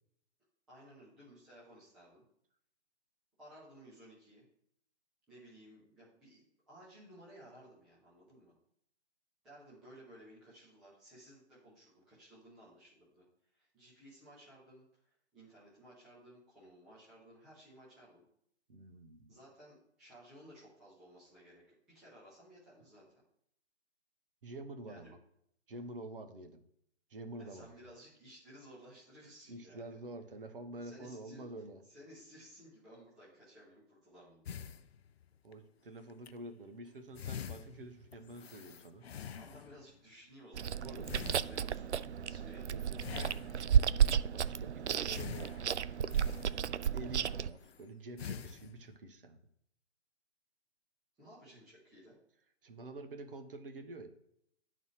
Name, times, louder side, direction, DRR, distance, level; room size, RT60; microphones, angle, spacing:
voice 1, 0.7-2.2 3.4-4.5 5.3-8.5 9.4-13.2 13.5-18.2 19.3-21.6 21.9-23.0 24.8-25.1 27.4-30.0 30.8-31.5 31.8-34.4 39.3-42.9 51.2-52.2, equal, ahead, -11 dB, 0.5 m, -57 dB
voice 2, 18.7-19.3 24.4-25.2 25.7-26.6 27.1-27.7 29.5-31.8 35.4-39.1 40.8-41.1 42.7-43.4 44.0-45.5 46.1-46.2 46.8-49.4 52.6-54.1, right 2 dB, 50° right, 6 dB, 1.4 m, -48 dB
sound 1, 34.5-35.5 36.1-36.3 36.9-37.0 37.1-39.9 41.0-42.0 43.0-43.9 45.1-47.0 47.6-47.8 48.2-49.0, left 8 dB, 65° left, 0.5 m, -46 dB
Chewing mastication, 40.5-47.5, right 8 dB, 75° right, 0.5 m, -32 dB
10.5 x 4.1 x 4.8 m, 0.73 s
figure-of-eight pair, 140°, 34 cm